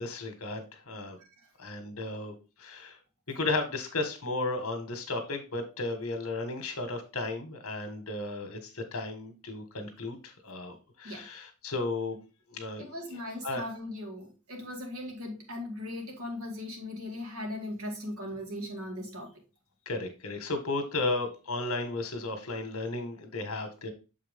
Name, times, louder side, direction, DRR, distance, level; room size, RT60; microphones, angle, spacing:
voice 1, 0.0-1.2 1.6-2.3 2.6-3.0 3.3-12.2 12.5-12.8 13.4-13.6 19.9-23.9, left 2 dB, 70° left, 6 dB, 1.6 m, -34 dB
voice 2, 12.8-19.3, left 1 dB, 80° right, 2 dB, 2.2 m, -38 dB
7.1 x 4.9 x 3.6 m, 0.31 s
head